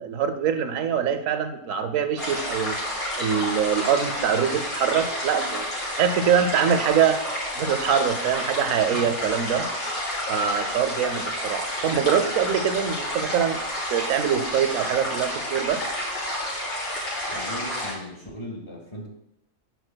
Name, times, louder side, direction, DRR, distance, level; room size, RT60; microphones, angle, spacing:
voice 1, 0.0-2.8 3.2-5.7 6.0-9.7 10.3-13.6 13.9-15.8, right 8 dB, 85° right, 8 dB, 1.1 m, -24 dB
sound 1, 2.2-17.9, left 1 dB, 85° left, 3.0 m, -30 dB
voice 2, 17.3-19.1, equal, 20° left, -1 dB, 1.5 m, -37 dB
14.5 x 4.9 x 2.2 m, 0.80 s
omnidirectional pair, 1.3 m